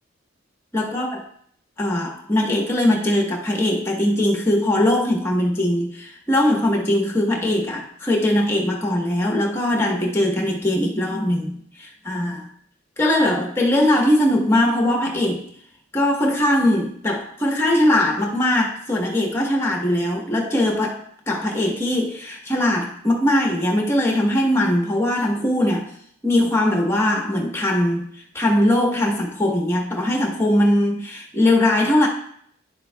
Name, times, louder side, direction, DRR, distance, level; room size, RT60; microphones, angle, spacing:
voice 1, 0.7-1.2 1.8-12.5 13.0-15.4 15.9-21.0 21.3-25.9 26.2-28.0 28.3-32.1, left 1 dB, 15° left, 0 dB, 1.2 m, -20 dB
10.5 x 7.2 x 2.3 m, 0.64 s
head